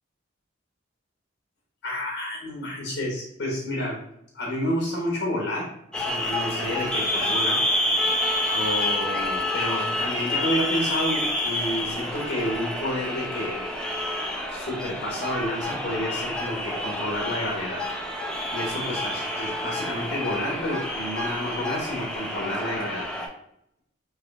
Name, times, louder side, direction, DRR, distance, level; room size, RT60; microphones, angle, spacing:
voice 1, 1.8-4.0 4.3-7.6 8.5-13.6 14.5-17.8 18.5-23.1, left 1 dB, 60° left, -2 dB, 0.9 m, -30 dB
sound 1, 5.9-23.3, left 1 dB, 5° left, 0.4 m, -28 dB
3.9 x 2.9 x 2.3 m, 0.77 s
head